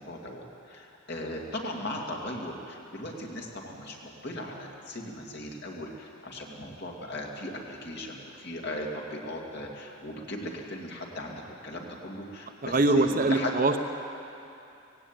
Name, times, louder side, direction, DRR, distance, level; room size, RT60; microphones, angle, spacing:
voice 1, 0.0-13.5, left 1 dB, 55° left, -1 dB, 2.5 m, -38 dB
voice 2, 12.6-13.8, right 2 dB, 40° right, 6 dB, 1.0 m, -23 dB
18.0 x 16.0 x 9.0 m, 2.8 s
head